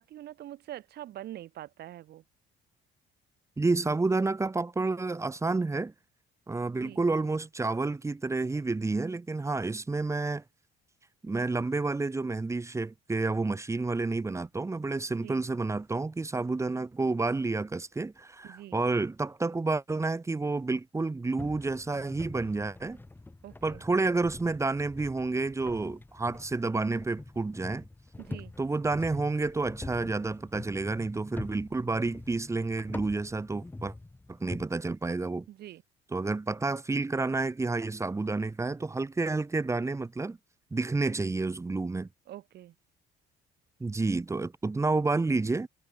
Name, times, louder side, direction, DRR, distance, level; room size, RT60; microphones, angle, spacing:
voice 1, 0.0-2.2 6.7-7.0 15.1-15.4 18.4-18.8 23.4-23.8 28.2-28.5 35.5-35.8 42.3-42.7, right 13 dB, 65° right, 4.1 m, -44 dB
voice 2, 3.6-5.9 6.5-10.4 11.2-23.0 23.6-27.9 28.6-33.9 34.3-35.5 36.1-40.4 40.7-42.1 43.8-45.7, right 3 dB, 15° right, 2.8 m, -30 dB
sound 1, 21.4-34.6, left 2 dB, 10° left, 2.8 m, -45 dB
cardioid pair, 125°, 18 cm